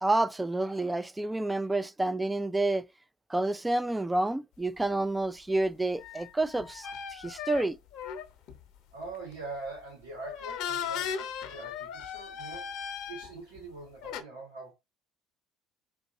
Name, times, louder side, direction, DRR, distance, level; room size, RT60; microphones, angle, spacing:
voice 1, 0.0-2.8 3.3-7.8, right 2 dB, 10° right, 0.4 m, -29 dB
sound 1, 6.0-8.6 9.0-9.3 10.2-13.6 14.0-14.2, left 7 dB, 60° left, 0.9 m, -37 dB
voice 2, 8.9-14.7, right 3 dB, 85° right, 1.7 m, -43 dB
4.5 x 2.7 x 4.2 m
hypercardioid pair, 60°, 0 cm